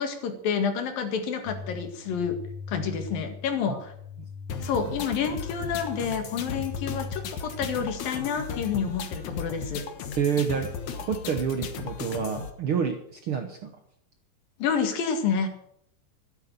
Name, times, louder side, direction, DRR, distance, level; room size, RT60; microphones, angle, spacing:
voice 1, 0.0-2.4 2.7-3.9 4.6-9.8 14.6-15.5, left 6 dB, 85° left, 6 dB, 3.7 m, -29 dB
sound 1, 1.5-7.8, left 5 dB, 45° left, 1.6 m, -40 dB
sound 2, 4.5-12.5, left 6 dB, 65° left, 2.5 m, -36 dB
voice 2, 10.2-10.7 11.0-13.7, right 7 dB, 60° right, 6 dB, 1.5 m, -28 dB
12.5 x 11.5 x 6.8 m, 0.67 s
omnidirectional pair, 3.9 m